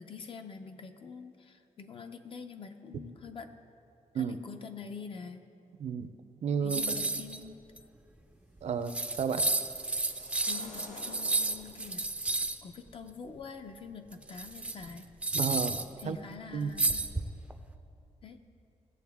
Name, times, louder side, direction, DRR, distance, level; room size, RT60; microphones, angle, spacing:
voice 1, 0.0-3.5 4.1-5.5 6.6-7.6 10.4-12.1 12.6-15.1 16.0-17.2 18.2-18.4, left 5 dB, 45° left, 7 dB, 0.6 m, -45 dB
voice 2, 6.4-6.8 8.6-9.4 15.3-16.2 16.5-16.7, right 7 dB, 65° right, 10 dB, 0.5 m, -32 dB
sound 1, 6.7-7.4 7.8-7.9 8.6-8.7 8.9-12.6 14.1-16.0 16.8-17.5, right 2 dB, 10° right, 0.4 m, -31 dB
sound 2, 8.8-12.0, left 2 dB, 85° left, 1.4 m, -52 dB
17.5 x 7.5 x 3.6 m, 2.6 s
wide cardioid pair, 170°, 12 cm